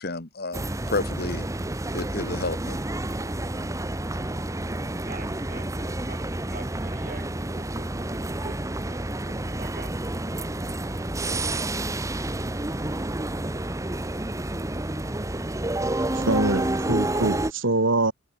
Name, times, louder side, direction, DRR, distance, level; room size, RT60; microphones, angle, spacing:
voice 1, 0.0-1.5 1.9-2.8, left 2 dB, 55° left, 2.1 m, -30 dB
sound 1, 0.5-17.5, right 1 dB, 15° right, 1.0 m, -29 dB
voice 2, 5.1-10.1, right 3 dB, 45° right, 4.1 m, -45 dB
voice 3, 16.1-18.1, right 2 dB, 80° right, 2.4 m, -24 dB
head